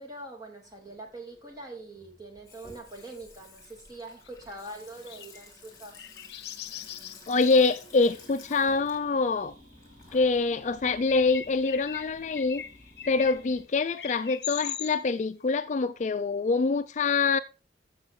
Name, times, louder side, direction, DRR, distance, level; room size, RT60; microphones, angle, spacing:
voice 1, 0.0-6.1, right 2 dB, 20° right, 2.8 m, -43 dB
Water tap faucet / Sink (filling or washing), 0.6-12.3, left 3 dB, 20° left, 3.3 m, -53 dB
sound 1, 4.3-4.5 5.1-5.5 5.9-7.8 11.1-13.6 14.0-14.9, left 9 dB, 65° left, 0.7 m, -40 dB
voice 2, 7.3-9.5 10.1-12.6 13.1-17.4, left 4 dB, 40° left, 0.4 m, -25 dB
sound 2, 7.9-13.6, left 1 dB, 45° right, 3.4 m, -55 dB
13.5 x 7.0 x 3.7 m
head